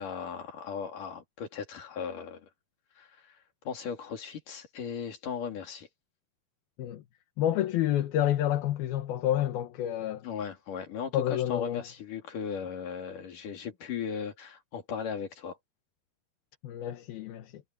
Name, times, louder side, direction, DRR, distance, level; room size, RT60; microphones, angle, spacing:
voice 1, 0.0-2.5 3.0-3.4 3.6-5.9 10.2-15.6, left 6 dB, 55° left, 4.6 m, -37 dB
voice 2, 7.4-10.3 11.1-11.8 16.6-17.6, left 12 dB, 75° left, 3.1 m, -29 dB
omnidirectional pair, 4.5 m